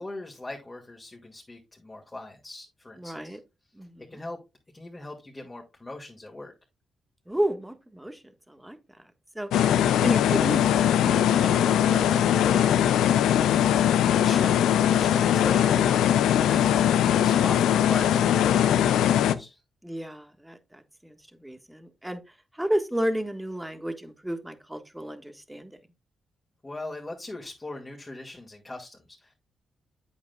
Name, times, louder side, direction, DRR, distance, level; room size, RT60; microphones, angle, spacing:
voice 1, 0.0-3.4 4.1-4.4 4.7-6.5 14.2-19.1 19.3-19.6 26.6-29.3, left 2 dB, 20° left, 2.2 m, -40 dB
voice 2, 3.0-3.4 3.7-4.2 7.3-9.5 10.0-13.4 19.8-22.2 22.5-25.8, right 1 dB, 10° right, 1.4 m, -33 dB
sound 1, 9.5-19.3, left 10 dB, 85° left, 0.5 m, -21 dB
8.5 x 8.0 x 2.3 m
supercardioid pair, 55°, 0 cm